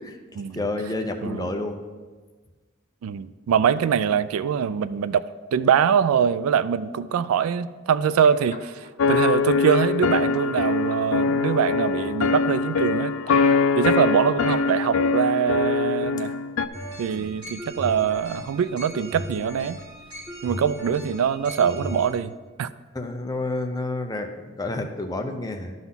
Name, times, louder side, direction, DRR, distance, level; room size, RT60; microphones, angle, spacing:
voice 1, 0.0-1.8 13.8-13.9 17.2-17.4 22.9-25.7, left 2 dB, 20° left, 4 dB, 0.6 m, -30 dB
voice 2, 3.0-5.2 5.5-13.1 13.8-16.3 17.0-19.8 20.4-22.3 22.6-22.7, right 7 dB, 85° right, 16 dB, 0.3 m, -23 dB
sound 1, 8.2-8.9 9.6-10.6 10.9-11.2 12.0-12.1 12.7-12.8 13.0-13.1 13.3-13.9 14.5-14.8 15.1-15.2, left 3 dB, 35° left, 1.0 m, -40 dB
sound 2, 9.0-16.7, left 4 dB, 70° left, 0.4 m, -23 dB
sound 3, 16.7-22.1, equal, 25° right, 2.5 m, -37 dB
11.5 x 4.0 x 5.6 m, 1.4 s
head